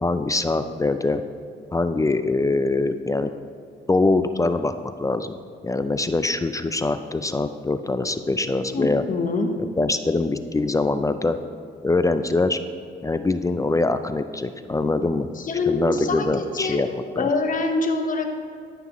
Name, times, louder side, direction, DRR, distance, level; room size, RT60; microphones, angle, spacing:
voice 1, 0.0-1.2 1.7-3.3 3.9-5.4 5.6-9.0 9.6-11.4 11.8-12.6 13.0-15.3 15.7-16.9 17.2-17.3, left 3 dB, 15° left, 10 dB, 0.4 m, -23 dB
voice 2, 8.7-9.5 15.4-16.9 17.2-18.3, left 3 dB, 40° left, 4 dB, 1.1 m, -25 dB
13.5 x 5.8 x 3.1 m, 2.3 s
cardioid pair, 90°, 20 cm